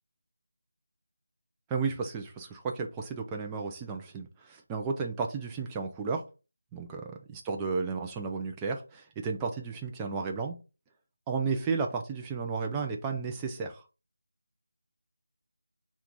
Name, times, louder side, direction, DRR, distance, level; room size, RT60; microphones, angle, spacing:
voice 1, 1.7-6.2 6.7-10.6 11.3-13.8, right 4 dB, 10° right, 0.4 m, -33 dB
4.5 x 2.4 x 3.8 m
figure-of-eight pair, 165°, 0 cm